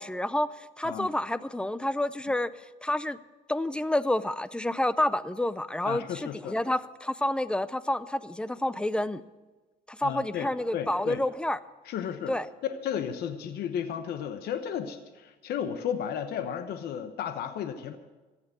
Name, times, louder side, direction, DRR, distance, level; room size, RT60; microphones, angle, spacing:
voice 1, 0.0-2.5 2.8-3.2 3.5-9.2 9.9-11.6 12.3-12.5, left 1 dB, 5° left, 16 dB, 0.5 m, -29 dB
voice 2, 5.8-6.6 10.0-10.5 10.7-11.2 11.8-12.3 12.7-18.0, left 8 dB, 70° left, 9 dB, 1.0 m, -33 dB
14.5 x 8.9 x 8.2 m, 1.2 s
cardioid pair, 110°, 17 cm